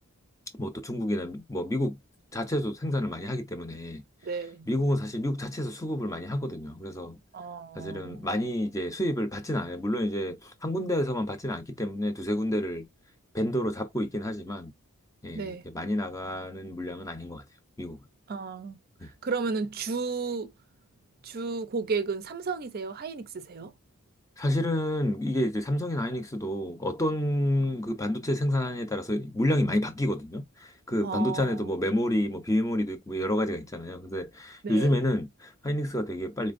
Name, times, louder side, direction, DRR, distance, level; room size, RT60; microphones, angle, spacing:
voice 1, 0.6-2.0 2.3-4.0 4.7-7.2 7.8-12.9 13.3-14.7 15.2-17.4 17.8-18.0 19.0-19.1 24.4-36.5, left 1 dB, 15° left, 0.6 m, -29 dB
voice 2, 4.2-4.7 7.3-8.3 15.3-15.6 18.3-20.5 21.2-23.7 31.0-31.9 34.6-35.0, right 4 dB, 45° right, 0.5 m, -33 dB
4.3 x 3.2 x 2.5 m
head